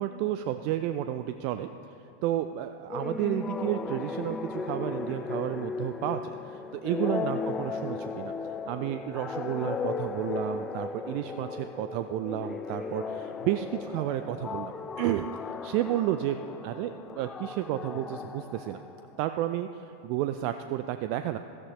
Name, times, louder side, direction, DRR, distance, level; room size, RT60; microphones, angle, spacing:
voice 1, 0.0-1.7 2.2-14.7 15.0-15.3 15.6-16.4 16.6-18.8 19.2-21.4, right 13 dB, 45° right, 9 dB, 0.4 m, -31 dB
sound 1, 2.9-19.3, left 4 dB, 20° left, 0.6 m, -36 dB
16.0 x 14.0 x 3.1 m, 2.6 s
figure-of-eight pair, 90°, 0 cm